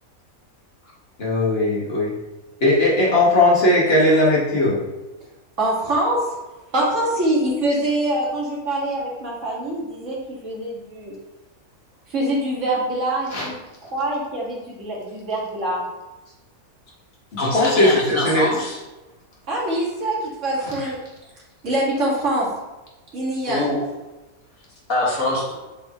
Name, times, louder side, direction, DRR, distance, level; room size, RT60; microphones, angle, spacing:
voice 1, 1.2-2.1 2.6-4.8 13.3-13.5 17.3-18.5, left 1 dB, 45° left, -4 dB, 1.8 m, -18 dB
voice 2, 5.6-6.3 6.7-11.1 12.1-13.5 13.8-15.9 19.5-21.0 21.6-22.5 23.1-23.7, right 1 dB, 55° right, -5 dB, 2.2 m, -24 dB
voice 3, 17.4-18.8 23.5-23.8 24.9-25.5, left 2 dB, 65° left, -5 dB, 2.3 m, -24 dB
7.3 x 5.0 x 3.0 m, 1.1 s
omnidirectional pair, 1.5 m